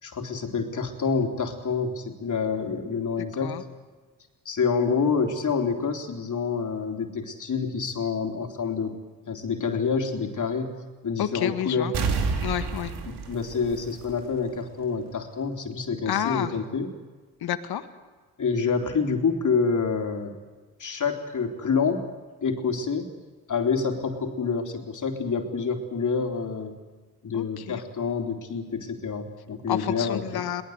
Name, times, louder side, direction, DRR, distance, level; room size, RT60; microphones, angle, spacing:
voice 1, 0.0-3.6 4.5-9.0 9.3-10.7 11.0-11.9 13.0-16.9 18.4-20.3 20.8-22.0 22.4-23.1 23.5-26.7 27.2-30.4, left 5 dB, 45° left, 3 dB, 3.7 m, -27 dB
voice 2, 11.2-11.9 12.4-12.9 16.1-16.5 17.4-17.8 27.3-27.8 29.7-30.6, left 11 dB, 60° left, 11 dB, 1.7 m, -29 dB
sound 1, 11.9-14.6 14.9-15.0, right 4 dB, 65° right, 3.0 m, -29 dB
23.0 x 19.0 x 8.1 m, 1.4 s
hypercardioid pair, 50°, 42 cm